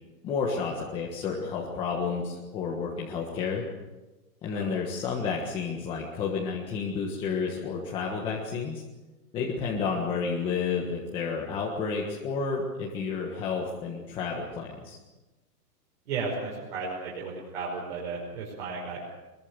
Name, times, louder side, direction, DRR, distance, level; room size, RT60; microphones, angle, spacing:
voice 1, 0.2-3.6 4.4-8.8 9.3-15.0, left 5 dB, 10° left, -3 dB, 1.5 m, -31 dB
voice 2, 16.1-19.1, right 4 dB, 40° right, -4 dB, 5.8 m, -34 dB
24.0 x 22.5 x 6.9 m, 1.1 s
hypercardioid pair, 180°, 48 cm